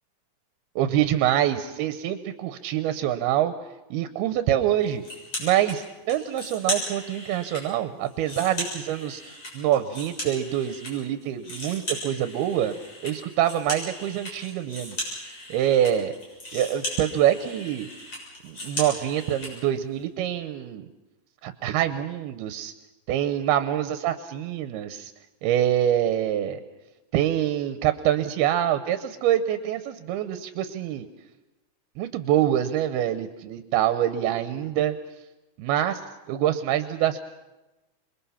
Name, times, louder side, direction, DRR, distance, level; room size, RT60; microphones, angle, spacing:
voice 1, 0.8-3.5 3.9-5.0 5.4-9.2 9.5-12.8 13.0-15.0 15.5-16.1 16.5-17.9 18.4-20.9 21.4-22.7 23.1-25.1 25.4-26.6 27.1-31.1 32.0-35.0 35.6-36.0 36.3-37.2, right 11 dB, 90° right, 9 dB, 2.9 m, -25 dB
sound 1, 5.0-5.8 6.1-7.6 8.0-10.9 11.2-19.5, left 1 dB, 35° left, 7.8 m, -36 dB
27.5 x 22.0 x 5.7 m, 1.0 s
omnidirectional pair, 4.4 m